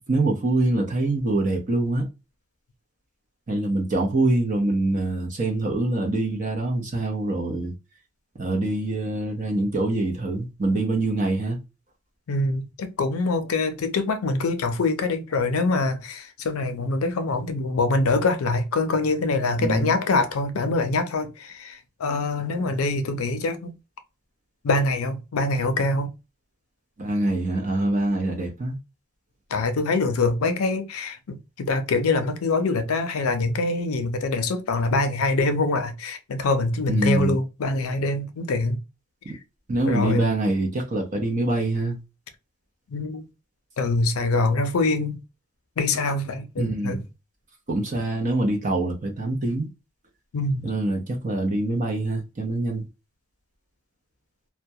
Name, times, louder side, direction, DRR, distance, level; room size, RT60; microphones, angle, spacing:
voice 1, 0.1-2.1 3.5-7.7 8.3-11.6 19.6-19.9 27.0-28.8 36.9-37.4 39.2-39.4 39.7-42.0 46.6-47.1 47.7-49.7 50.6-52.9, right 2 dB, 35° right, 0.6 m, -25 dB
voice 2, 12.3-23.7 24.6-26.1 29.5-38.8 39.9-40.2 42.9-43.3 43.8-45.2 45.8-47.0 50.3-50.7, left 3 dB, 90° left, 0.5 m, -24 dB
2.2 x 2.1 x 2.7 m
head